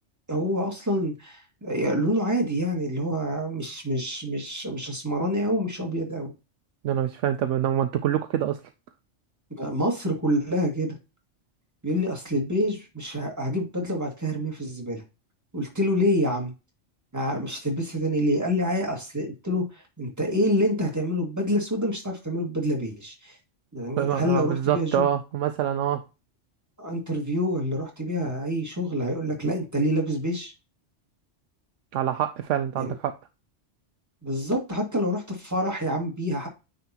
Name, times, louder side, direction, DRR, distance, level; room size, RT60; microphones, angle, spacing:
voice 1, 0.3-6.3 9.5-10.9 11.8-15.0 15.5-16.5 17.1-23.4 23.7-25.1 26.8-30.5 32.8-32.9 34.2-36.5, equal, 15° right, 0 dB, 1.9 m, -27 dB
voice 2, 6.8-8.6 24.0-26.0 31.9-33.1, right 10 dB, 75° right, 8 dB, 0.9 m, -25 dB
9.3 x 4.0 x 2.8 m, 0.28 s
omnidirectional pair, 1.3 m